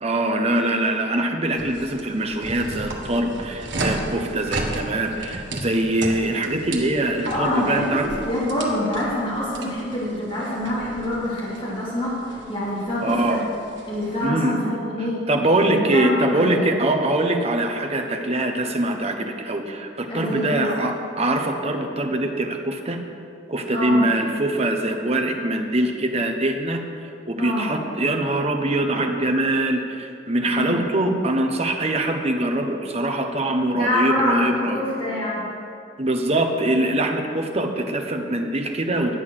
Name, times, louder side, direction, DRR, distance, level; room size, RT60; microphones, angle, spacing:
voice 1, 0.0-8.1 13.0-13.4 14.2-14.6 15.3-23.0 23.5-26.8 27.3-34.8 36.0-39.2, right 1 dB, 35° right, 4 dB, 1.0 m, -23 dB
sound 1, 1.6-14.3, right 2 dB, 75° right, 1.6 m, -34 dB
voice 2, 7.3-13.4 13.9-15.3 15.6-16.5 20.1-20.7 23.7-24.1 27.4-27.8 30.5-30.8 33.7-35.5, left 1 dB, 30° left, -8 dB, 3.1 m, -26 dB
10.5 x 8.0 x 6.5 m, 2.4 s
head